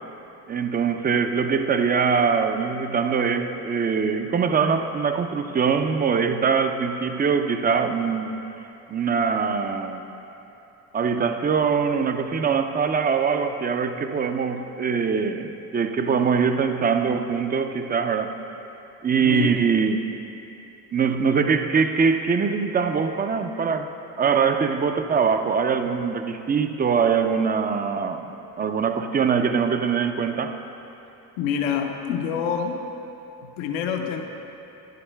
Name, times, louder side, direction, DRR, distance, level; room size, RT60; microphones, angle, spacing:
voice 1, 0.5-8.4 8.9-10.1 10.9-18.3 19.0-20.1 20.9-23.9 24.2-28.3 28.6-30.6, right 6 dB, 20° right, 7 dB, 0.4 m, -23 dB
voice 2, 19.2-19.6 31.4-32.8 33.4-34.2, left 7 dB, 70° left, 4 dB, 0.8 m, -26 dB
11.5 x 10.0 x 2.2 m, 2.9 s
hypercardioid pair, 60°, 49 cm